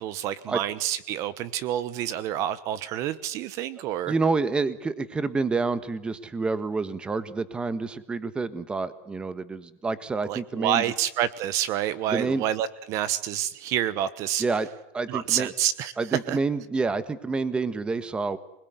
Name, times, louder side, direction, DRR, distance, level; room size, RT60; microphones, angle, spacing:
voice 1, 0.0-4.1 10.2-14.4 15.1-15.9 16.3-16.4, right 11 dB, 45° right, 17 dB, 1.2 m, -28 dB
voice 2, 4.1-10.8 12.1-12.4 14.4-14.7 14.9-15.5 16.0-18.4, right 4 dB, 15° right, 14 dB, 1.4 m, -28 dB
26.5 x 20.5 x 9.5 m, 0.84 s
supercardioid pair, 145°, 8 cm